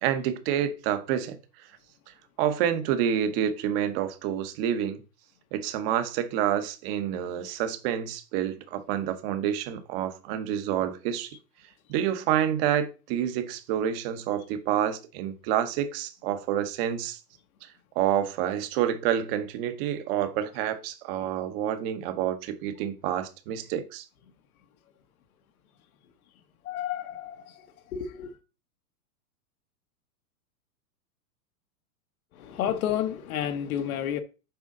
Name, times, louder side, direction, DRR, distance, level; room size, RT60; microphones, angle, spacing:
voice 1, 0.0-1.3 2.4-5.0 5.5-11.3 11.9-17.2 17.9-24.0, right 10 dB, 35° right, 1.1 m, -28 dB
voice 2, 26.6-28.3 32.3-34.2, left 10 dB, 65° left, 1.2 m, -31 dB
7.1 x 5.0 x 3.8 m
supercardioid pair, 155°, 47 cm